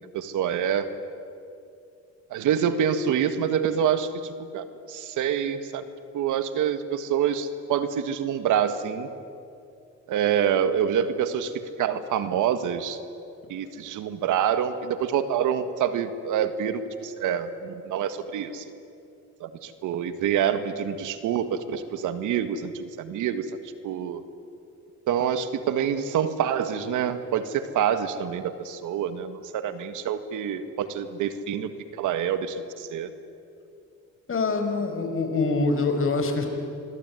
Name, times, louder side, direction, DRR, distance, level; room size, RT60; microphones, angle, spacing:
voice 1, 0.1-0.9 2.3-5.9 6.1-9.1 10.1-11.5 11.8-13.0 13.5-18.6 19.4-23.5 23.8-24.2 25.1-33.1, right 8 dB, 85° right, 11 dB, 1.8 m, -26 dB
voice 2, 34.3-36.5, left 3 dB, 45° left, 5 dB, 5.1 m, -25 dB
27.5 x 22.0 x 9.6 m, 2.5 s
cardioid pair, 90°, 30 cm